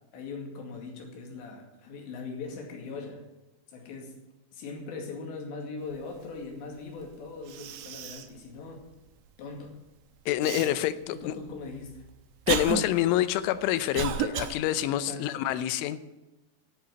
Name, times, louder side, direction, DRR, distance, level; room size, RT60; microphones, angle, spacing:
voice 1, 0.1-3.3 3.7-4.2 4.5-8.8 9.4-9.7 10.4-10.6 11.1-12.0 14.9-15.4, left 4 dB, 70° left, 2 dB, 4.4 m, -40 dB
Cough, 7.0-7.1 7.5-8.4 8.8-8.9 10.4-10.7 11.5-14.5, right 8 dB, 75° right, 2.6 m, -32 dB
voice 2, 10.3-11.4 12.5-16.0, left 13 dB, 90° left, 13 dB, 3.2 m, -27 dB
11.0 x 8.7 x 9.3 m, 1.1 s
omnidirectional pair, 5.4 m